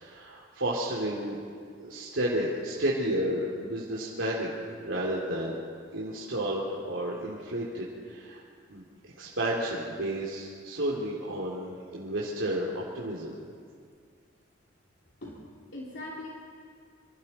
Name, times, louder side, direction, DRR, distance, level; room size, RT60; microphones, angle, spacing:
voice 1, 0.0-1.4 1.8-4.5 4.8-5.6 5.9-8.4 8.7-13.4, right 1 dB, 80° right, -5 dB, 3.0 m, -32 dB
voice 2, 15.2-16.3, left 1 dB, 60° left, -4 dB, 3.1 m, -41 dB
26.5 x 26.0 x 4.3 m, 2.1 s
head